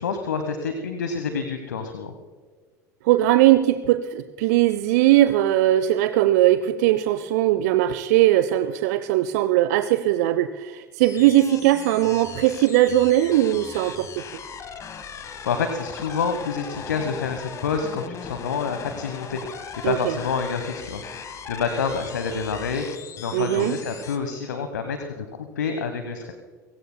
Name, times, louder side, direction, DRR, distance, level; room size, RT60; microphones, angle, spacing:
voice 1, 0.0-2.1 15.2-22.9 23.2-26.3, left 5 dB, 75° left, 7 dB, 1.2 m, -28 dB
voice 2, 3.0-14.1 19.8-20.1 23.3-23.8, right 14 dB, 60° right, 12 dB, 0.6 m, -19 dB
sound 1, 11.0-24.2, left 6 dB, 30° left, 1.6 m, -39 dB
30.0 x 16.5 x 2.2 m, 1.5 s
figure-of-eight pair, 75°, 10 cm